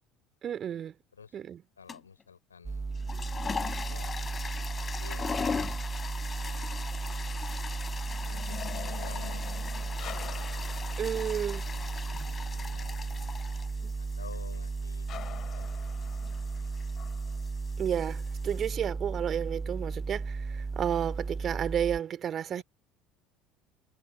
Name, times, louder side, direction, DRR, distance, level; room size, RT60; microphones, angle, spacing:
voice 1, 0.4-0.9 1.3-1.6 11.0-11.6 13.8-13.9 17.8-22.6, right 9 dB, 40° right, 3.0 m, -32 dB
voice 2, 1.8-2.9 3.8-4.4 4.8-6.8 7.0-7.4 8.2-11.0 11.6-12.0 12.3-13.3 14.0-17.3 22.5-22.6, left 6 dB, 80° left, 4.3 m, -53 dB
sound 1, 1.9-2.2 2.9-18.7, left 5 dB, 25° left, 3.6 m, -40 dB
sound 2, 2.6-22.0, right 4 dB, 20° right, 0.9 m, -35 dB
sound 3, 3.6-4.9 7.4-12.2 15.1-17.5, left 12 dB, 45° left, 5.2 m, -47 dB
figure-of-eight pair, 65°, 0 cm